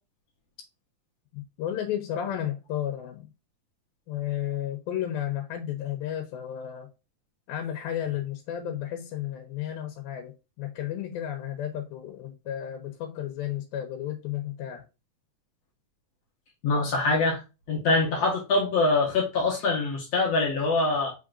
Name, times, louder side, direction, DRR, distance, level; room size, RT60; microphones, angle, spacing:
voice 1, 1.3-3.3 4.1-6.9 7.5-14.8, left 11 dB, 85° left, 2.6 m, -33 dB
voice 2, 16.6-17.4 17.7-21.1, left 3 dB, 60° left, 1.8 m, -24 dB
5.4 x 3.7 x 2.4 m
omnidirectional pair, 4.1 m